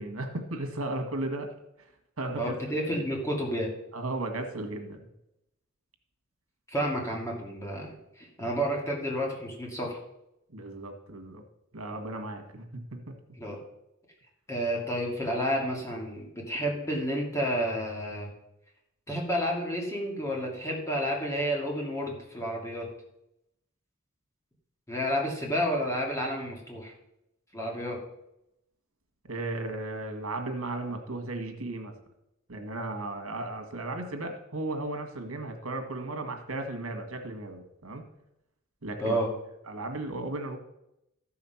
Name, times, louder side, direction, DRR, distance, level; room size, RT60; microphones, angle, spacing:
voice 1, 0.0-1.5 2.2-2.5 2.9-3.0 3.9-5.0 10.5-11.4 11.7-13.1 29.2-31.9 32.5-38.0 38.8-39.2 39.7-40.6, right 2 dB, 80° right, 6 dB, 1.8 m, -35 dB
voice 2, 2.4-3.7 6.7-10.0 13.4-13.6 14.5-18.3 19.1-22.9 24.9-26.9 27.5-28.0 39.0-39.3, equal, 15° left, -2 dB, 2.4 m, -30 dB
14.0 x 5.7 x 5.8 m, 0.85 s
head